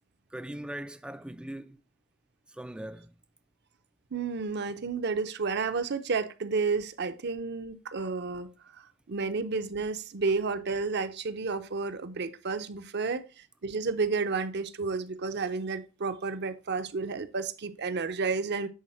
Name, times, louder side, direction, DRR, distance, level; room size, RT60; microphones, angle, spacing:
voice 1, 0.3-1.8 2.5-3.1, right 1 dB, 5° right, 0.3 m, -40 dB
voice 2, 4.1-18.7, right 4 dB, 55° right, 0.6 m, -31 dB
10.5 x 4.2 x 4.3 m
head